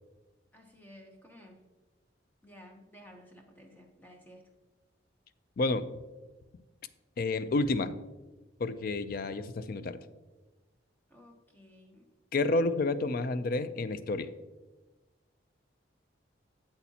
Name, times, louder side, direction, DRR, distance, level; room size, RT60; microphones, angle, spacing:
voice 1, 0.5-1.6 2.4-4.4 11.1-12.1, equal, 10° left, 1 dB, 0.8 m, -54 dB
voice 2, 5.6-5.9 7.2-7.9 8.6-10.0 12.3-14.3, left 2 dB, 50° left, 13 dB, 0.4 m, -30 dB
8.3 x 8.0 x 2.8 m, 1.2 s
head